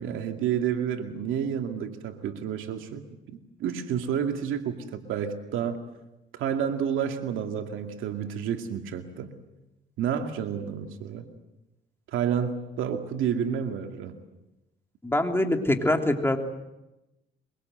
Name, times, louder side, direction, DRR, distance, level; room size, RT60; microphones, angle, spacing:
voice 1, 0.0-5.8 6.3-9.3 10.0-11.3 12.1-14.2, right 8 dB, 90° right, 5 dB, 2.4 m, -30 dB
voice 2, 15.0-16.4, left 1 dB, 10° left, 4 dB, 3.2 m, -24 dB
24.0 x 23.5 x 7.9 m, 0.96 s
cardioid pair, 90°, 20 cm